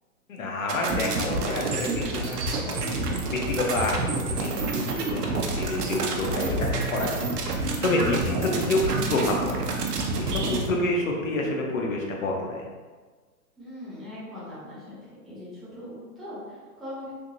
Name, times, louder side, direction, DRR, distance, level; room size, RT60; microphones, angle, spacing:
voice 1, 0.3-2.8 3.3-7.1 7.4-9.7 10.2-12.7, left 2 dB, 60° left, 0 dB, 0.8 m, -28 dB
sound 1, 0.7-10.7, right 3 dB, 85° right, 0.7 m, -28 dB
voice 2, 13.6-15.0 15.2-17.1, left 1 dB, ahead, -12 dB, 0.3 m, -40 dB
3.5 x 2.8 x 2.6 m, 1.4 s
hypercardioid pair, 180°, 46 cm